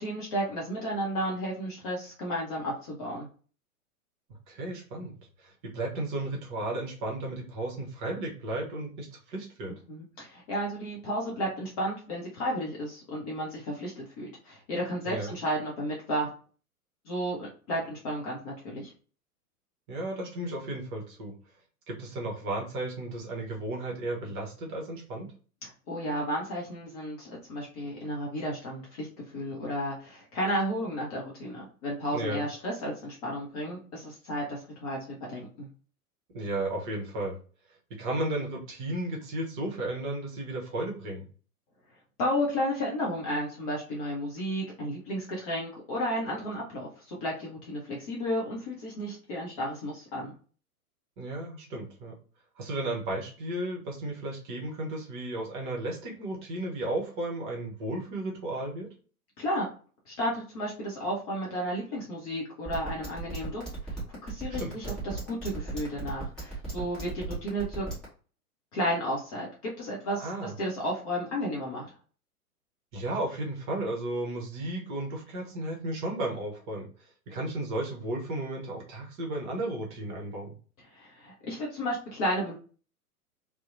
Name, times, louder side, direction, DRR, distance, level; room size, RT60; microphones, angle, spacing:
voice 1, 0.0-3.3 9.9-16.3 17.1-18.9 25.6-29.1 29.3-35.7 42.2-50.3 59.4-59.7 60.1-67.9 68.7-71.9 80.9-82.5, equal, 25° left, -3 dB, 0.5 m, -33 dB
voice 2, 4.5-5.1 5.4-9.7 15.0-15.3 19.9-21.3 21.9-25.3 32.1-32.5 36.3-37.4 37.9-41.3 51.2-52.1 52.6-58.9 64.6-64.9 70.2-70.5 72.9-80.5, right 1 dB, 35° right, -1 dB, 0.8 m, -34 dB
sound 1, 62.7-68.0, right 2 dB, ahead, 0.9 m, -36 dB
2.7 x 2.0 x 2.4 m, 0.40 s
figure-of-eight pair, 100°, 46 cm